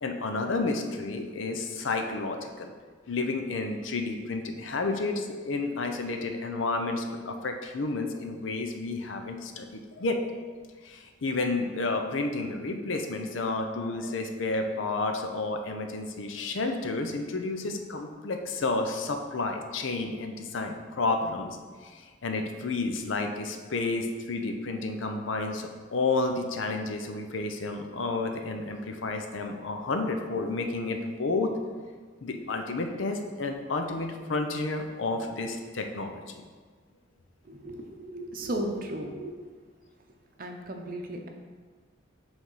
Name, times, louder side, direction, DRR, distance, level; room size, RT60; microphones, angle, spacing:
voice 1, 0.0-2.7 3.1-10.4 10.8-21.6 21.8-31.6 32.2-36.2, left 3 dB, 80° left, 5 dB, 0.6 m, -31 dB
voice 2, 37.5-39.3 40.4-41.3, right 1 dB, 45° right, 4 dB, 0.7 m, -35 dB
6.0 x 3.5 x 5.5 m, 1.5 s
head